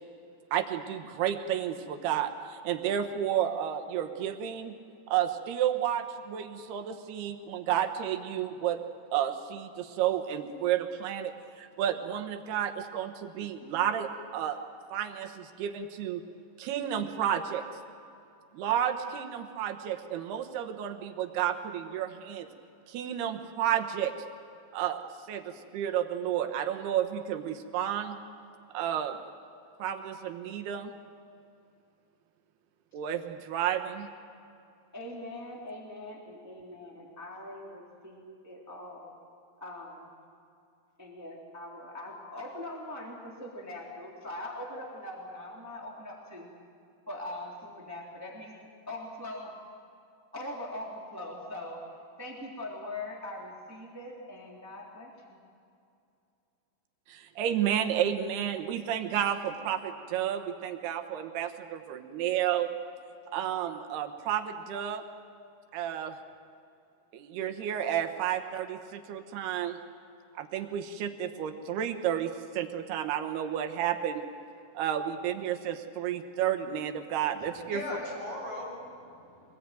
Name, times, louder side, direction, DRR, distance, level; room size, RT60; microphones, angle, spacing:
voice 1, 0.5-4.8 5.1-8.8 9.1-14.6 14.9-16.2 16.6-17.7 18.5-22.5 22.9-24.1 24.7-25.0 25.3-28.2 28.7-29.2 29.8-31.0 32.9-34.1 57.1-62.7 63.3-65.0 65.7-66.2 67.1-69.8 70.3-74.2 74.7-77.8, right 10 dB, 80° right, 6 dB, 3.2 m, -31 dB
voice 2, 34.9-39.1 39.6-40.1 41.0-46.5 47.1-48.6 48.9-49.5 50.3-51.8 52.2-55.4, left 1 dB, 5° right, -1 dB, 2.6 m, -42 dB
voice 3, 77.4-79.6, left 1 dB, 55° left, -2 dB, 9.0 m, -39 dB
24.5 x 20.0 x 9.2 m, 2.5 s
omnidirectional pair, 4.6 m